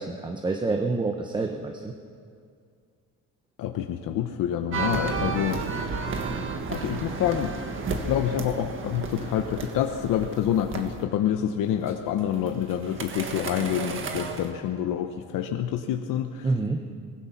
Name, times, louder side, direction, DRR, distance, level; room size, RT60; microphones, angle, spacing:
voice 1, 0.0-1.9 16.4-16.8, right 3 dB, 15° right, 4 dB, 0.8 m, -27 dB
voice 2, 3.6-5.6 6.7-7.5 7.9-16.5, left 10 dB, 70° left, 5 dB, 1.0 m, -27 dB
sound 1, 4.7-11.0 11.9-14.5, right 4 dB, 35° right, 1.7 m, -32 dB
23.5 x 20.5 x 5.9 m, 2.2 s
cardioid pair, 175°, 34 cm